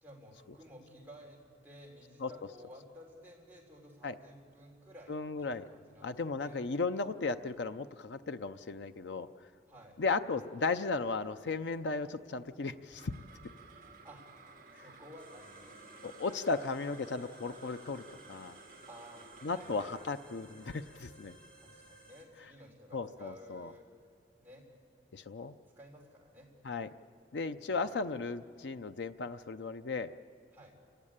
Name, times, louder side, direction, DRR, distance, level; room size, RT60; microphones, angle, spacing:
voice 1, 0.0-6.6 9.7-10.0 14.0-14.2 14.8-15.7 18.9-19.9 21.6-23.8 24.4-24.7 25.8-26.5 27.5-27.8 30.5-30.7, equal, 10° right, -2 dB, 3.8 m, -54 dB
voice 2, 5.1-5.6 6.0-9.3 10.0-13.1 16.0-18.6 19.4-21.4 22.9-23.7 25.1-25.5 26.6-26.9 27.3-30.1, left 4 dB, 90° left, 10 dB, 0.6 m, -35 dB
sound 1, 12.7-23.3, right 4 dB, 50° right, 2.1 m, -56 dB
sound 2, 15.2-22.2, right 2 dB, 5° left, 2.9 m, -58 dB
28.5 x 15.0 x 8.8 m, 2.2 s
head